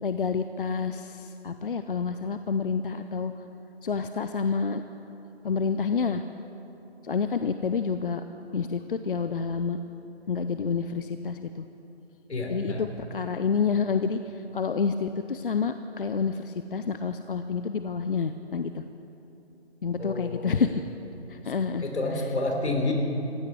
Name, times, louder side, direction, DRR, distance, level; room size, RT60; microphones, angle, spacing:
voice 1, 0.0-3.3 3.8-4.8 5.4-6.2 7.0-8.2 8.5-9.8 10.3-11.7 12.5-18.8 19.8-20.8 21.3-21.9, left 5 dB, 55° left, 9 dB, 0.6 m, -28 dB
voice 2, 12.3-12.8 20.0-20.6 21.8-22.9, left 2 dB, 80° left, 2 dB, 3.7 m, -29 dB
15.5 x 8.8 x 9.8 m, 2.9 s
hypercardioid pair, 170°, 33 cm